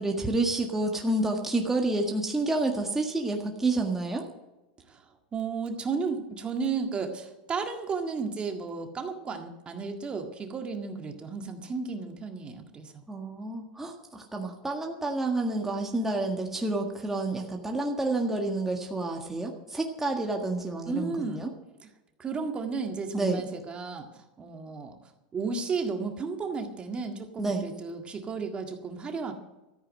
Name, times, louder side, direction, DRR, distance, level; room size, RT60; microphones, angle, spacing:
voice 1, 0.0-4.2 13.1-21.5 23.1-23.4 27.4-27.6, right 2 dB, 10° right, 1 dB, 1.7 m, -29 dB
voice 2, 4.9-13.0 20.9-21.5 22.2-25.0 25.3-29.3, right 4 dB, 25° right, 4 dB, 1.8 m, -33 dB
14.0 x 9.0 x 7.5 m, 1.0 s
supercardioid pair, 120°, 4 cm